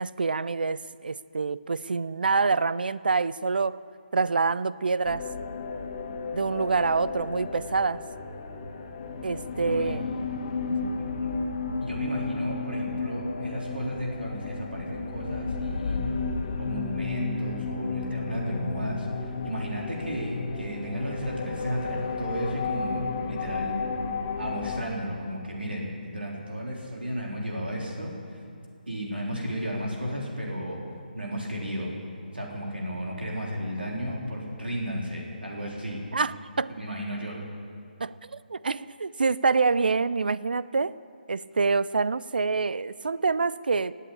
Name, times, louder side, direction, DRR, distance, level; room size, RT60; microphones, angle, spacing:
voice 1, 0.0-3.8 4.1-5.3 6.3-8.0 9.2-10.1 10.7-11.0 36.1-36.8 38.0-41.0 41.3-44.0, right 4 dB, 65° right, 18 dB, 0.5 m, -26 dB
sound 1, 5.0-24.8, left 4 dB, 35° left, 1.7 m, -33 dB
voice 2, 9.6-10.0 11.0-11.4 11.8-16.0 16.6-23.8 24.4-28.4 28.9-30.8 31.1-31.9 32.3-36.0 36.7-37.4, equal, 80° right, -2 dB, 3.7 m, -34 dB
19.0 x 8.3 x 8.6 m, 2.4 s
figure-of-eight pair, 150°, 5 cm